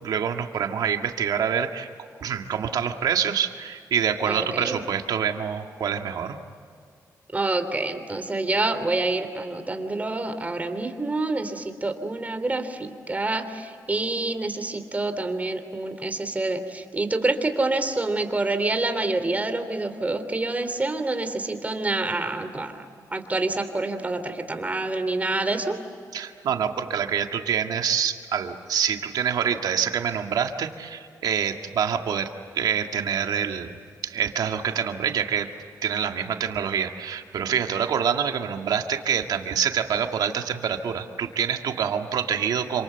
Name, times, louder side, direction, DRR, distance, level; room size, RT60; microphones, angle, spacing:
voice 1, 0.0-1.9 2.2-6.4 26.1-33.8 34.0-35.5 35.8-42.8, right 8 dB, 85° right, 5 dB, 1.9 m, -26 dB
voice 2, 4.3-4.8 7.3-25.8, right 2 dB, 25° right, 8 dB, 3.1 m, -27 dB
28.0 x 26.5 x 8.0 m, 2.3 s
cardioid pair, 95°, 7 cm